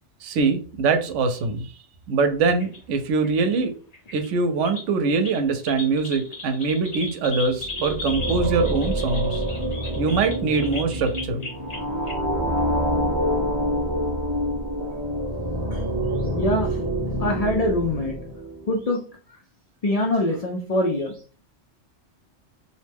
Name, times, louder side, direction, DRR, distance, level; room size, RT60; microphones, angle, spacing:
voice 1, 0.2-1.7 2.1-3.7 4.1-9.4 9.9-11.4, right 4 dB, 85° right, 7 dB, 0.9 m, -23 dB
sound 1, 2.5-2.8 3.2-3.6 3.9-4.3 4.6-4.8 5.2-11.8 12.1-12.2, left 3 dB, 40° left, 0.7 m, -36 dB
sound 2, 7.6-18.7, equal, 35° right, 0.4 m, -27 dB
voice 2, 16.4-16.8 17.2-18.2 18.7-19.0 19.8-21.2, left 1 dB, 75° left, 1 dB, 0.3 m, -24 dB
2.6 x 2.1 x 3.3 m, 0.40 s
omnidirectional pair, 1.2 m